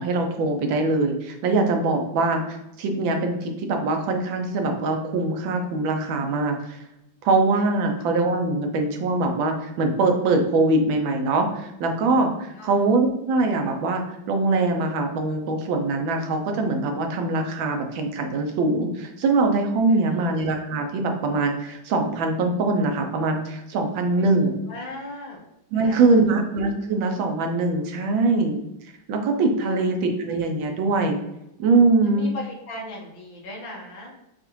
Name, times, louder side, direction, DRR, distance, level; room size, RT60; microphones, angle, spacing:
voice 1, 0.0-6.8 7.2-24.5 25.7-28.6 29.1-31.2 31.6-32.3, right 3 dB, 85° right, 4 dB, 1.5 m, -22 dB
voice 2, 19.9-20.3 24.0-25.4 25.7-26.2 28.1-28.3 29.6-29.9 32.0-34.1, left 1 dB, 75° left, -2 dB, 1.9 m, -38 dB
7.0 x 2.5 x 3.1 m, 0.88 s
omnidirectional pair, 2.1 m